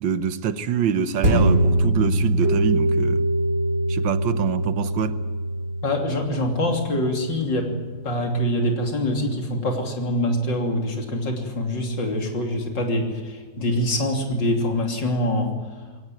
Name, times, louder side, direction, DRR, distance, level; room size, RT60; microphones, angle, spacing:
voice 1, 0.0-3.3 3.9-5.2, right 8 dB, 85° right, 1.8 m, -25 dB
sound 1, 1.2-10.0 10.5-10.6, right 1 dB, 45° right, 5.1 m, -25 dB
Keyboard (musical), 2.4-5.7, right 2 dB, 15° left, 5.9 m, -28 dB
voice 2, 5.8-7.7 8.0-15.5, left 1 dB, 70° left, 3.7 m, -24 dB
22.5 x 17.5 x 9.4 m
omnidirectional pair, 2.0 m